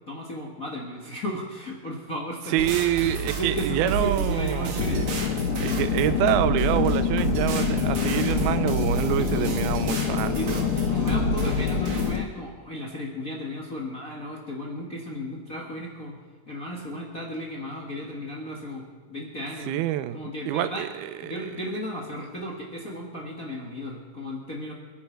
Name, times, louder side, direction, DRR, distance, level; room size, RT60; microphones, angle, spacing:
voice 1, 0.1-2.7 3.0-5.2 7.7-8.1 9.2-9.6 10.3-10.5 10.7-16.1 16.5-19.8 20.1-20.8 21.2-24.7, equal, 40° left, -2 dB, 1.3 m, -34 dB
voice 2, 2.5-5.0 5.6-10.7 19.7-20.2 20.5-21.5, right 13 dB, 85° right, 13 dB, 2.5 m, -26 dB
sound 1, 2.6-12.2, right 3 dB, 50° right, 2.4 m, -29 dB
sound 2, 4.8-12.2, left 12 dB, 80° left, 2.1 m, -27 dB
28.0 x 10.5 x 4.6 m, 1.5 s
omnidirectional pair, 4.4 m